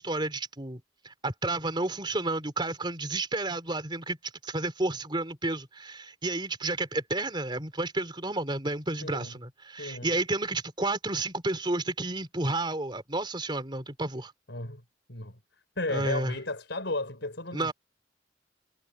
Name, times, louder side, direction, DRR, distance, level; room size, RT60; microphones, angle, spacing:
voice 1, 0.0-4.2 4.4-14.3 15.9-16.3 17.5-17.7, right 2 dB, 25° right, 3.7 m, -31 dB
voice 2, 9.0-9.3 9.7-10.1 14.5-14.8 15.1-15.4 15.8-17.7, left 2 dB, 70° left, 5.5 m, -34 dB
head